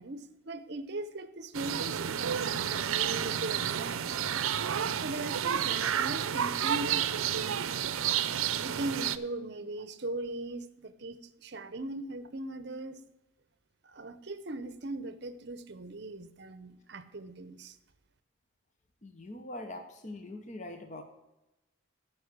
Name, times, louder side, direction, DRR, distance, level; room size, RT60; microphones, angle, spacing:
voice 1, 0.0-4.0 5.0-7.9 8.6-13.0 13.8-17.8, right 2 dB, 55° right, 12 dB, 0.7 m, -39 dB
sound 1, 1.5-9.2, right 9 dB, 90° right, 0.5 m, -30 dB
voice 2, 19.0-21.0, left 1 dB, 35° left, 5 dB, 0.8 m, -42 dB
9.7 x 5.5 x 8.1 m, 0.94 s
head